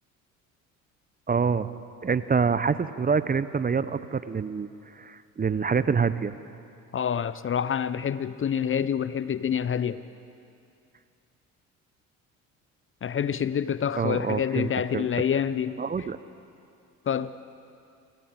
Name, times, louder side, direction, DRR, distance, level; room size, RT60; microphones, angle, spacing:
voice 1, 1.3-1.7 2.0-4.7 4.9-6.3 14.0-15.1 15.8-16.2, right 5 dB, 20° right, 0.8 m, -26 dB
voice 2, 6.9-10.0 13.0-16.1 17.1-17.3, left 8 dB, 30° left, 0.8 m, -27 dB
25.5 x 16.5 x 7.7 m
hypercardioid pair, 55°, 40 cm